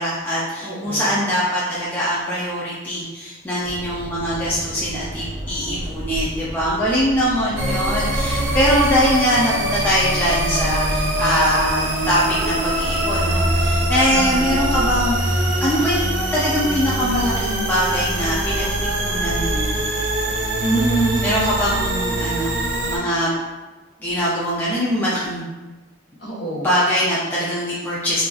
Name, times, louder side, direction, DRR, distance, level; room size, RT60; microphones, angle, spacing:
voice 1, 0.0-16.0 16.3-18.7 19.0-19.7 21.2-22.6 22.8-23.3 24.0-25.5 26.6-28.2, equal, 10° left, -8 dB, 0.3 m, -22 dB
voice 2, 0.6-1.3 14.1-14.5 20.6-21.3 26.2-26.7, right 2 dB, 50° left, -7 dB, 1.0 m, -25 dB
sound 1, 3.6-14.5, equal, 15° right, 0.9 m, -33 dB
sound 2, 7.6-23.0, right 1 dB, 65° right, 0.5 m, -23 dB
3.9 x 2.3 x 2.3 m, 1.2 s
head